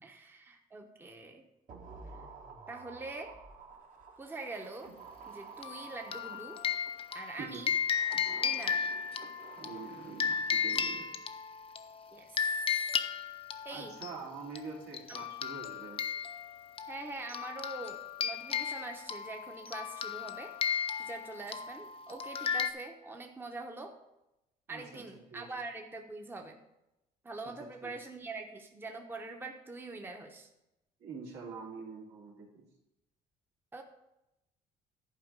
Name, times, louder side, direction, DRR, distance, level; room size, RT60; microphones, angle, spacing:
voice 1, 0.0-1.4 2.7-3.4 4.2-4.9 5.3-6.6 7.1-7.7 8.4-8.9 12.1-12.4 13.6-14.0 15.1-15.3 16.9-20.5 21.0-23.9 24.7-26.6 27.2-30.5 33.7-33.8, right 3 dB, 10° right, 3 dB, 0.8 m, -44 dB
sound 1, 1.7-7.1 7.8-11.0 11.3-11.4, right 4 dB, 55° right, 1.5 m, -51 dB
sound 2, 5.6-11.8 12.4-14.1 14.6-14.7 14.9-22.7, left 7 dB, 35° left, 0.6 m, -34 dB
voice 2, 9.5-11.2 13.7-16.0 24.7-25.5 27.6-28.0 31.0-32.6, right 5 dB, 80° right, -2 dB, 2.7 m, -45 dB
11.0 x 4.5 x 5.2 m, 0.91 s
cardioid pair, 110°, 17 cm